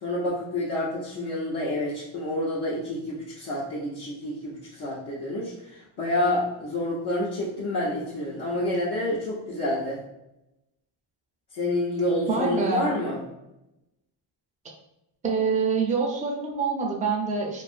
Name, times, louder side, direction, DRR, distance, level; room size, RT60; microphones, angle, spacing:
voice 1, 0.0-10.0 11.5-13.2, left 1 dB, 55° left, -7 dB, 0.8 m, -28 dB
voice 2, 12.3-12.9 15.2-17.6, right 5 dB, 15° right, -1 dB, 0.5 m, -26 dB
2.6 x 2.4 x 2.5 m, 0.90 s
cardioid pair, 100°, 47 cm